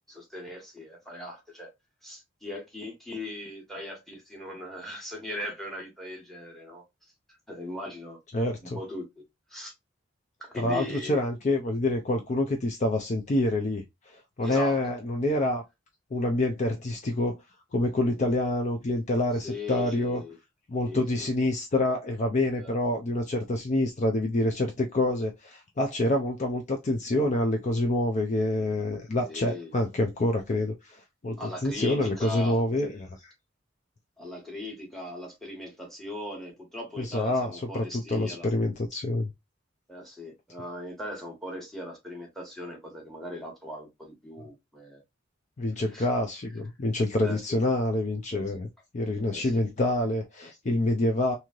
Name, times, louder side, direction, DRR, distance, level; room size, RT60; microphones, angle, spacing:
voice 1, 0.0-1.7 2.0-6.8 7.5-8.2 8.6-9.2 9.5-9.7 10.4-11.2 14.4-14.9 19.4-20.4 20.8-21.3 22.5-22.7 29.2-29.7 31.4-32.6 34.2-38.5 39.9-45.0 45.9-46.1 47.2-47.4 49.3-49.5, left 1 dB, ahead, 1.2 m, -39 dB
voice 2, 8.3-8.8 10.5-13.8 14.4-15.6 16.1-17.4 17.7-20.2 20.7-33.3 37.0-39.3 45.6-48.7 48.9-51.4, left 1 dB, 40° left, 0.5 m, -27 dB
3.1 x 2.7 x 2.4 m
head